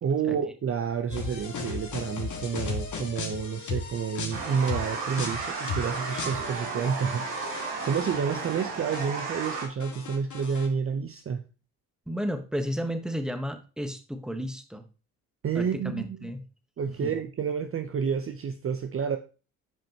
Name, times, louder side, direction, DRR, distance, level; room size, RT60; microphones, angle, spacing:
voice 1, 0.0-7.5 7.8-11.4 15.4-16.3 16.8-19.2, right 6 dB, 35° right, 8 dB, 0.7 m, -29 dB
sound 1, 1.1-8.7 8.9-10.7, left 4 dB, 45° left, 1.9 m, -36 dB
sound 2, 4.3-9.6, right 5 dB, 65° right, 2.3 m, -34 dB
voice 2, 12.1-14.8 15.5-16.4 17.0-17.1, equal, ahead, 7 dB, 1.1 m, -32 dB
9.1 x 5.1 x 2.9 m, 0.34 s
hypercardioid pair, 60°, 40 cm